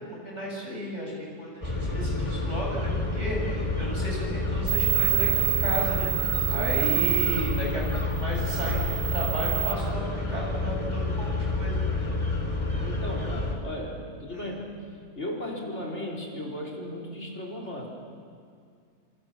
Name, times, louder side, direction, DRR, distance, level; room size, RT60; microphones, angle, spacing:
voice 1, 0.0-11.8 14.3-14.5, right 1 dB, 45° right, -2 dB, 7.3 m, -34 dB
sound 1, 1.6-13.5, left 2 dB, 20° left, 3.3 m, -29 dB
sound 2, 4.7-9.7, right 16 dB, 65° right, 1.3 m, -28 dB
voice 2, 6.5-7.0 12.8-14.8 15.1-17.9, left 1 dB, 45° left, 0 dB, 4.3 m, -36 dB
29.0 x 27.0 x 7.5 m, 2.2 s
omnidirectional pair, 1.7 m